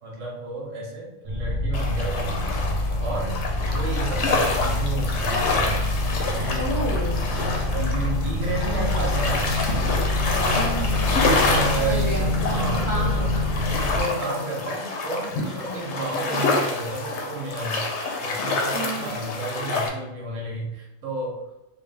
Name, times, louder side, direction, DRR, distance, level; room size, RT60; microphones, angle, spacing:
voice 1, 0.0-2.5 3.0-3.4 3.6-5.2 5.5-5.9 6.3-6.7 7.7-9.5 11.2-13.3 13.7-17.9 18.2-21.4, right 2 dB, 75° right, -1 dB, 1.2 m, -32 dB
sound 1, 1.2-14.0, left 1 dB, 45° right, 0.7 m, -26 dB
sound 2, 1.7-19.9, left 3 dB, 70° left, 0.8 m, -27 dB
voice 2, 6.6-7.2 10.5-11.0 11.8-12.2 12.9-13.4 18.7-19.2, right 1 dB, 20° left, -5 dB, 0.5 m, -31 dB
3.3 x 2.3 x 3.3 m, 0.91 s
omnidirectional pair, 1.3 m